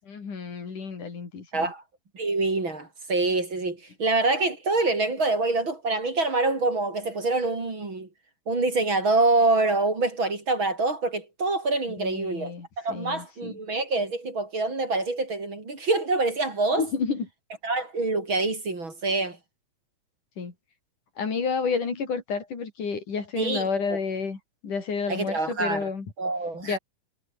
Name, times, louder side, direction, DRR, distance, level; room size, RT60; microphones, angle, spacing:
voice 1, 0.1-1.7 12.0-13.6 16.7-17.3 20.4-20.5 21.2-26.1 26.6-26.8, left 5 dB, 70° left, 6.1 m, -30 dB
voice 2, 2.1-8.1 8.5-16.8 17.6-19.4 23.4-24.0 25.1-25.9 26.2-26.8, right 3 dB, 35° right, 4.8 m, -26 dB
omnidirectional pair, 3.7 m